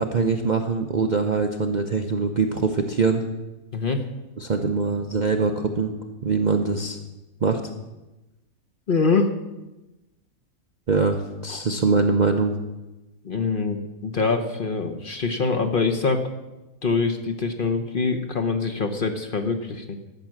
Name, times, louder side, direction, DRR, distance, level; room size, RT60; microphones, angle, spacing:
voice 1, 0.0-3.2 4.4-5.9 6.2-7.0 7.4-7.6 10.9-12.5, right 4 dB, 45° right, 4 dB, 0.6 m, -23 dB
voice 2, 3.7-4.0 8.9-9.3 11.5-11.6 13.2-16.2 16.8-20.0, left 4 dB, 45° left, 6 dB, 0.9 m, -24 dB
13.0 x 6.0 x 7.4 m, 1.0 s
omnidirectional pair, 1.5 m